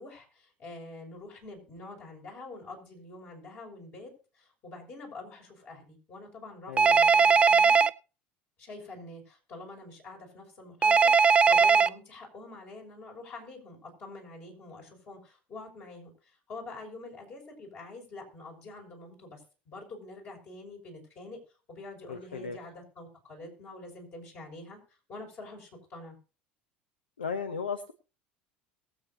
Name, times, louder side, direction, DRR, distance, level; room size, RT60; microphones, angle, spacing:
voice 1, 0.0-7.8 8.6-16.1 16.5-19.4 19.7-21.4 21.7-24.8 25.1-26.2, left 2 dB, 40° left, 1 dB, 6.2 m, -46 dB
voice 2, 6.7-7.0 22.1-22.6 27.2-27.9, left 5 dB, 80° left, 11 dB, 0.9 m, -35 dB
Telephone, 6.8-7.9 10.8-11.9, right 5 dB, 20° right, 0.5 m, -19 dB
22.0 x 8.4 x 2.8 m, 0.34 s
figure-of-eight pair, 70°, 5 cm